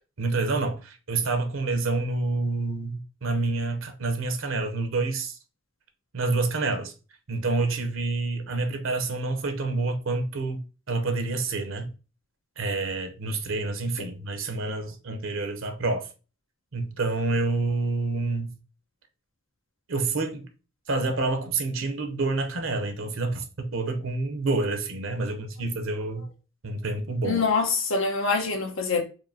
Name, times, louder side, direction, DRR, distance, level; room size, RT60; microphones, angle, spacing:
voice 1, 0.2-5.4 6.1-6.9 7.3-10.6 10.9-11.9 12.6-16.1 16.7-18.6 19.9-20.5 20.9-26.3 26.6-27.4, right 3 dB, 70° right, 0.7 m, -28 dB
voice 2, 27.2-29.0, left 4 dB, 70° left, 0.9 m, -25 dB
4.6 x 2.6 x 2.7 m
head